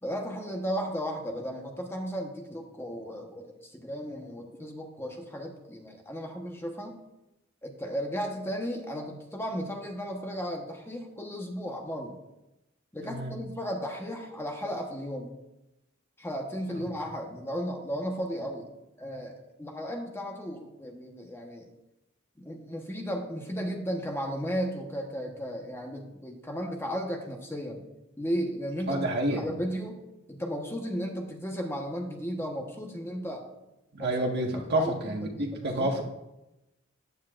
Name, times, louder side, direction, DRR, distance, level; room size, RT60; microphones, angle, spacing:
voice 1, 0.0-7.0 7.6-12.2 12.9-15.3 16.2-18.7 19.0-21.7 22.4-27.8 28.2-30.0 30.3-33.4 34.0-34.1 34.5-36.0, equal, 10° left, 1 dB, 1.1 m, -35 dB
voice 2, 13.0-13.3 28.9-29.4 33.9-36.0, right 1 dB, 55° right, 1 dB, 1.5 m, -29 dB
14.0 x 9.9 x 2.5 m, 0.95 s
head